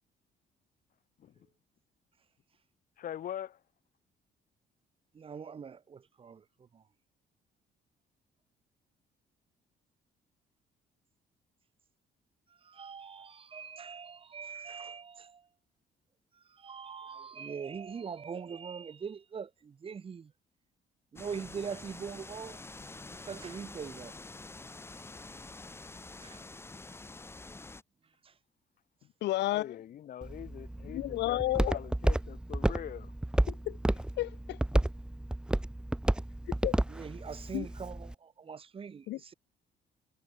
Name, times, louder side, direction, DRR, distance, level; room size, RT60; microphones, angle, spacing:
voice 1, 3.0-3.6 29.5-33.1, left 10 dB, 55° left, 1.8 m, -43 dB
voice 2, 5.1-6.8 12.5-15.5 16.3-20.3 21.1-22.6 23.2-24.2 26.2-26.4 28.2-28.3 36.9-39.3, right 6 dB, 30° right, 4.0 m, -42 dB
sound 1, 21.2-27.8, left 3 dB, 15° left, 5.8 m, -47 dB
voice 3, 29.2-29.8 30.9-31.8 33.5-34.8 36.6-36.7 37.5-37.7 39.1-39.2, left 16 dB, 85° left, 0.8 m, -32 dB
Walk footsteps, 30.2-38.1, right 1 dB, 5° right, 1.3 m, -32 dB
cardioid pair, 160°, 17 cm